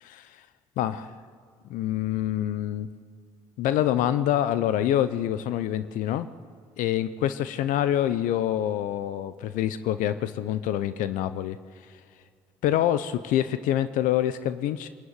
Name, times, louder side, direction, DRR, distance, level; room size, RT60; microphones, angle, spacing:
voice 1, 0.8-1.1 1.7-2.9 3.6-6.3 6.8-11.6 12.6-14.9, left 11 dB, 70° left, 13 dB, 0.8 m, -26 dB
24.5 x 14.5 x 9.2 m, 2.1 s
hypercardioid pair, 50°, 14 cm